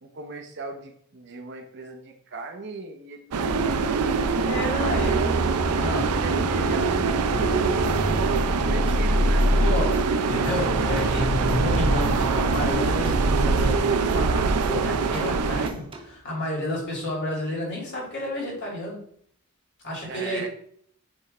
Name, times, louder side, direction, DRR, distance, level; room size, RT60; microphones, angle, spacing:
voice 1, 0.0-4.1 4.5-5.5 6.2-9.4 20.0-20.5, right 4 dB, 50° right, 4 dB, 0.8 m, -37 dB
sound 1, 3.3-15.7, right 4 dB, 85° right, 0.5 m, -24 dB
sound 2, 4.3-14.5 14.8-15.1, left 1 dB, 5° left, 0.9 m, -28 dB
voice 2, 4.4-5.2 5.8-6.2 9.5-19.0 19.8-20.5, left 1 dB, 50° left, -3 dB, 2.4 m, -31 dB
sound 3, 7.8-16.2, right 2 dB, 25° right, 0.6 m, -43 dB
7.2 x 3.3 x 4.2 m, 0.63 s
head